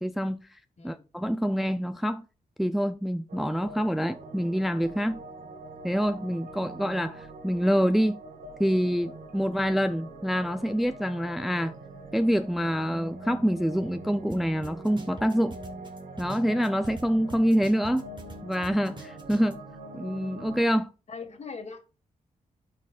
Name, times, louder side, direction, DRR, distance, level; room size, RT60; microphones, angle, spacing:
voice 1, 0.0-0.6 0.8-2.2 2.6-5.2 5.8-8.2 8.6-11.8 12.1-15.6 16.2-18.0 18.4-19.6 19.9-20.9, equal, ahead, 0.4 m, -26 dB
sound 1, 3.3-20.6, right 2 dB, 70° right, 1.1 m, -43 dB
sound 2, 14.3-14.4 14.6-17.0 17.3-19.5, right 3 dB, 30° right, 1.8 m, -43 dB
voice 2, 21.1-21.8, left 5 dB, 45° left, 1.8 m, -41 dB
13.0 x 4.5 x 2.4 m
cardioid pair, 70°, 15 cm